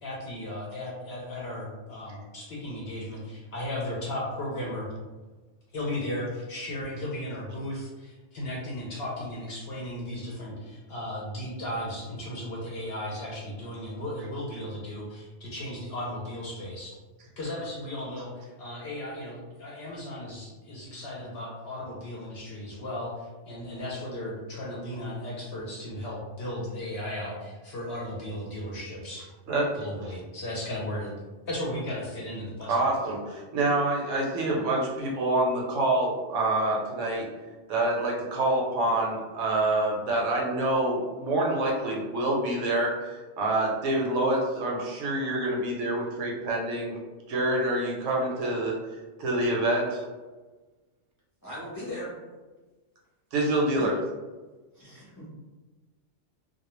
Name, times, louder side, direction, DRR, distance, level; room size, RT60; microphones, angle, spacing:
voice 1, 0.0-4.9 5.7-17.0 17.4-29.3 29.7-31.1 31.5-32.9, left 1 dB, 60° left, -4 dB, 0.7 m, -35 dB
voice 2, 32.7-37.3 37.7-47.0 47.3-48.8 49.2-50.1 53.3-53.9, right 2 dB, 70° right, -1 dB, 0.9 m, -26 dB
voice 3, 51.4-52.1 53.8-53.9 54.7-55.3, equal, 20° left, -8 dB, 0.6 m, -38 dB
2.2 x 2.1 x 3.0 m, 1.3 s
omnidirectional pair, 1.4 m